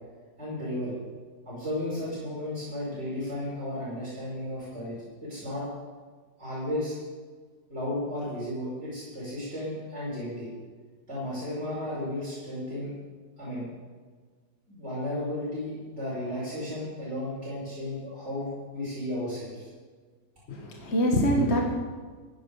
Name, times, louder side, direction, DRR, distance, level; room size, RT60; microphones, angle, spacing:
voice 1, 0.4-1.0 1.5-5.6 6.4-7.0 7.7-10.5 11.1-12.9 13.4-13.7 14.7-19.7, left 1 dB, 40° right, -10 dB, 5.6 m, -34 dB
voice 2, 20.5-21.7, equal, 40° left, 0 dB, 1.5 m, -24 dB
15.5 x 10.0 x 5.5 m, 1.5 s
omnidirectional pair, 1.9 m